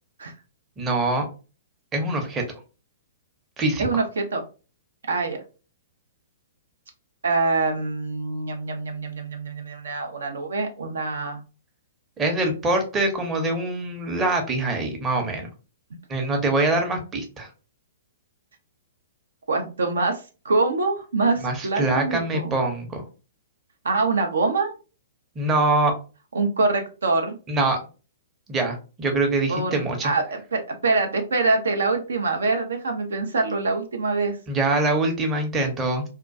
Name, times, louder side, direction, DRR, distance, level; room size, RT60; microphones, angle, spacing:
voice 1, 0.8-1.3 1.9-2.4 3.6-3.8 12.2-15.5 16.1-17.5 21.4-23.0 25.4-25.9 27.5-27.8 28.5-30.1 34.5-36.0, right 2 dB, 20° right, 3 dB, 0.6 m, -24 dB
voice 2, 3.8-4.4 5.1-5.4 7.2-11.4 19.5-22.6 23.8-24.7 26.3-27.4 29.5-34.4, right 3 dB, 75° right, 4 dB, 0.4 m, -25 dB
2.2 x 2.1 x 2.5 m, 0.34 s
figure-of-eight pair, 120°, 0 cm